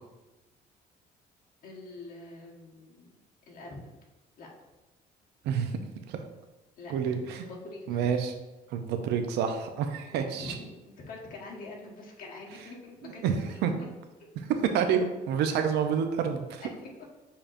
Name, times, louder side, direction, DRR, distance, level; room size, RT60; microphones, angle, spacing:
voice 1, 1.6-3.1 3.5-3.9 4.4-4.5 6.8-6.9 7.3-8.1 10.1-13.6 16.6-16.9, left 2 dB, 55° left, -2 dB, 1.3 m, -45 dB
voice 2, 6.9-7.4 7.9-8.3 8.7-10.5 13.0-13.3 13.6-13.7 14.7-16.6, right 7 dB, 80° right, 6 dB, 0.6 m, -28 dB
6.9 x 2.8 x 2.5 m, 1.1 s
cardioid pair, 110°, 17 cm